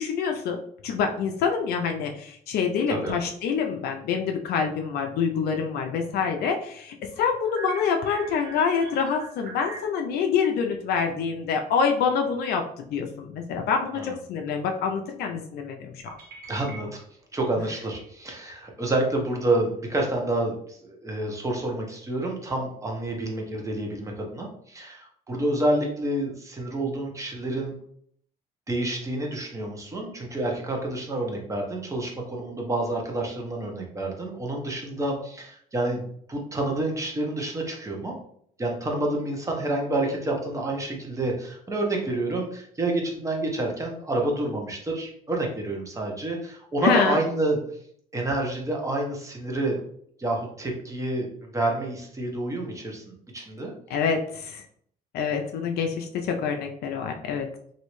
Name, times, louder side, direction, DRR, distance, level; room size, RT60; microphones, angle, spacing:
voice 1, 0.0-16.1 46.8-47.2 53.9-54.6 55.1-57.5, left 6 dB, 70° left, 3 dB, 0.5 m, -26 dB
sound 1, 7.3-10.1 12.1-12.2 12.4-12.8 16.1-17.2 17.6-17.7 18.3-18.8, right 3 dB, 65° right, 0.9 m, -43 dB
voice 2, 16.5-16.9 17.3-27.7 28.7-38.1 38.6-47.6 48.1-49.8 50.2-53.0 53.3-53.7, right 2 dB, 20° right, 0 dB, 0.9 m, -28 dB
3.1 x 2.6 x 3.0 m, 0.65 s
cardioid pair, 110°, 17 cm